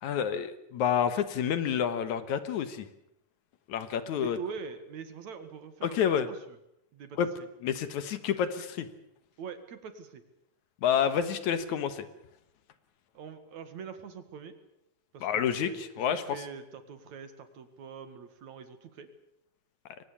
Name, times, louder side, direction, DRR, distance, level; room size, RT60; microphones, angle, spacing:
voice 1, 0.0-2.9 3.7-4.4 5.8-6.3 7.2-7.3 7.6-8.9 10.8-12.0 15.2-16.2, left 8 dB, 70° left, 12 dB, 2.5 m, -29 dB
voice 2, 4.1-6.4 6.9-7.2 9.4-10.2 13.1-14.6 15.1-19.1, right 6 dB, 60° right, 10 dB, 3.0 m, -43 dB
23.0 x 18.5 x 8.6 m, 0.80 s
omnidirectional pair, 3.7 m